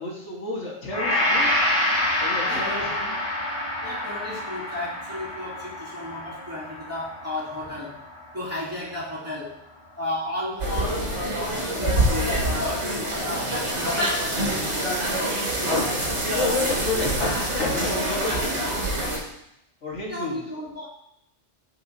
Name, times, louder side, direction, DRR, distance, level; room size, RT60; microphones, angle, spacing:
voice 1, 0.0-1.5 2.2-3.1 15.6-16.0 16.3-18.8 19.8-20.4, left 2 dB, 75° left, -3 dB, 1.8 m, -29 dB
Gong, 0.9-9.2 9.7-9.8, left 1 dB, 45° left, 2.6 m, -27 dB
voice 2, 2.5-3.0 3.8-8.0 8.3-9.6 10.0-15.0 16.4-16.8 20.1-20.9, left 2 dB, 10° right, -9 dB, 2.4 m, -34 dB
sound 1, 10.6-19.2, right 1 dB, 90° right, 2.4 m, -26 dB
13.0 x 4.9 x 2.8 m, 0.78 s
omnidirectional pair, 1.2 m